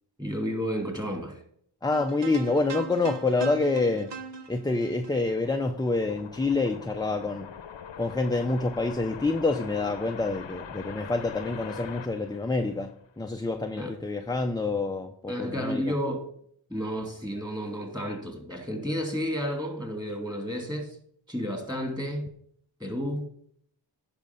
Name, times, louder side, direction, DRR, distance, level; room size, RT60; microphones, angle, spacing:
voice 1, 0.2-1.4 13.8-13.9 15.3-16.3 16.7-21.0 21.3-22.3 22.8-23.3, equal, 10° right, 2.5 m, -31 dB
voice 2, 1.8-4.1 4.5-7.5 8.0-15.8, left 3 dB, 10° left, 0.6 m, -27 dB
sound 1, 1.9-6.2, right 6 dB, 60° right, 1.0 m, -40 dB
sound 2, 4.9-13.2, left 7 dB, 70° left, 0.9 m, -43 dB
10.5 x 5.3 x 5.3 m
cardioid pair, 50°, 47 cm